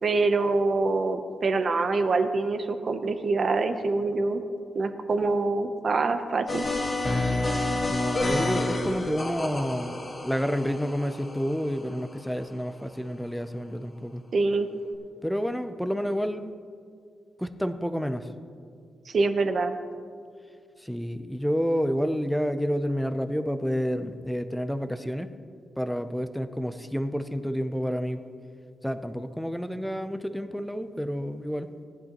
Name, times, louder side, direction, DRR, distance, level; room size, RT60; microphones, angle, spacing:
voice 1, 0.0-4.4 4.7-6.6 14.3-14.7 19.1-19.7, right 3 dB, 40° right, 8 dB, 0.7 m, -25 dB
sound 1, 6.5-12.3, left 2 dB, 25° left, 1.5 m, -29 dB
voice 2, 7.9-14.2 15.2-16.5 17.4-18.3 20.8-25.3 25.8-28.2 28.8-31.7, equal, ahead, 9 dB, 0.4 m, -29 dB
18.5 x 10.5 x 2.9 m, 2.2 s
wide cardioid pair, 170°, 0 cm